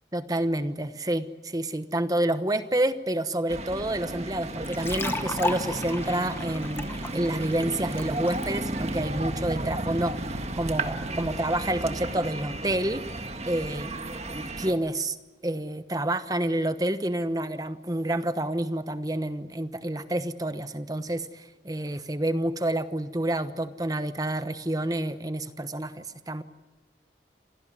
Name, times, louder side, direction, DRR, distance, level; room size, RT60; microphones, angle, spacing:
voice 1, 0.1-13.2 13.5-14.0 14.3-15.2 15.4-26.4, right 1 dB, 20° right, 11 dB, 1.0 m, -29 dB
sound 1, 3.5-14.7, right 2 dB, 35° right, 1.6 m, -33 dB
sound 2, 4.6-8.5, left 2 dB, 15° left, 1.1 m, -34 dB
27.5 x 17.5 x 9.5 m, 1.2 s
head